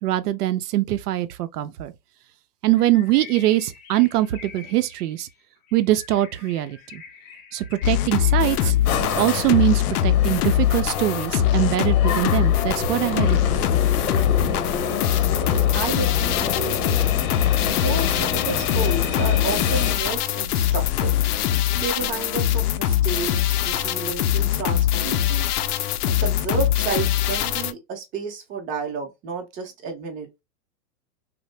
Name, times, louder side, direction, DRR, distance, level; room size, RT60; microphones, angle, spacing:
voice 1, 0.0-1.9 2.6-5.3 5.7-7.0 7.5-8.8 9.2-13.6, right 15 dB, 80° right, 0.6 m, -22 dB
Bird, 2.7-9.0, left 6 dB, 30° left, 0.4 m, -45 dB
sound 1, 7.8-27.7, left 11 dB, 80° left, 0.5 m, -22 dB
sound 2, 8.9-19.9, left 6 dB, 65° left, 0.9 m, -28 dB
voice 2, 15.5-17.1 17.8-21.1 21.8-25.5 26.2-30.3, right 5 dB, 20° right, 0.6 m, -31 dB
2.7 x 2.0 x 3.2 m
supercardioid pair, 145°, 46 cm